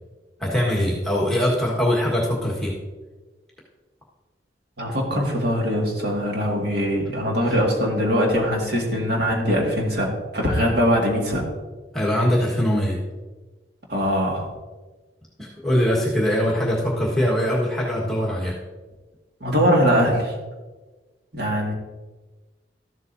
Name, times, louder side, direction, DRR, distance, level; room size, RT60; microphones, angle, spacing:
voice 1, 0.4-2.7 11.9-13.0 15.4-18.5, equal, 5° left, -5 dB, 1.5 m, -22 dB
voice 2, 4.8-11.4 13.9-14.5 19.4-20.3 21.3-21.7, equal, 65° right, -1 dB, 2.1 m, -22 dB
13.5 x 7.6 x 2.7 m, 1.3 s
head